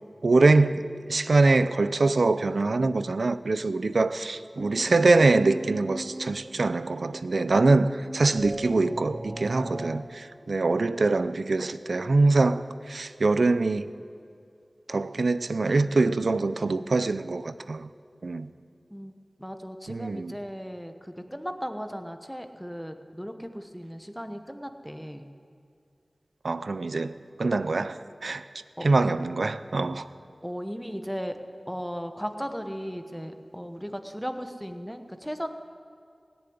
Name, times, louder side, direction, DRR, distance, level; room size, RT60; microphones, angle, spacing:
voice 1, 0.2-13.9 14.9-17.9 18.2-18.5 19.9-20.4 26.4-28.5 28.8-30.1, right 3 dB, 75° right, 0.5 m, -24 dB
sound 1, 4.5-10.0, right 1 dB, 25° right, 0.8 m, -39 dB
voice 2, 19.4-25.3 28.8-28.9 30.4-31.4 31.7-35.5, equal, ahead, 1.0 m, -36 dB
17.0 x 7.1 x 9.5 m
wide cardioid pair, 70°, 0 cm